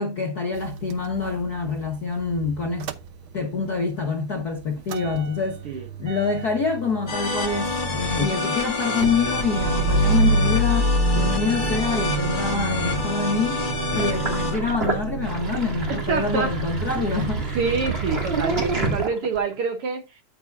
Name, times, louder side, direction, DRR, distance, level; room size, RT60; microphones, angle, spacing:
voice 1, 0.0-2.9 3.3-13.6 13.9-17.7, left 4 dB, 55° left, 1.1 m, -26 dB
Motor vehicle (road) / Engine starting / Idling, 0.5-3.7 4.0-19.0, right 3 dB, 80° right, 1.1 m, -28 dB
sound 1, 7.1-14.6, left 3 dB, 30° left, 0.9 m, -28 dB
Sink (filling or washing), 14.0-19.5, right 2 dB, 20° right, 2.1 m, -29 dB
voice 2, 15.9-16.5 17.5-20.0, right 5 dB, 60° right, 1.6 m, -26 dB
13.0 x 6.1 x 2.6 m
omnidirectional pair, 3.4 m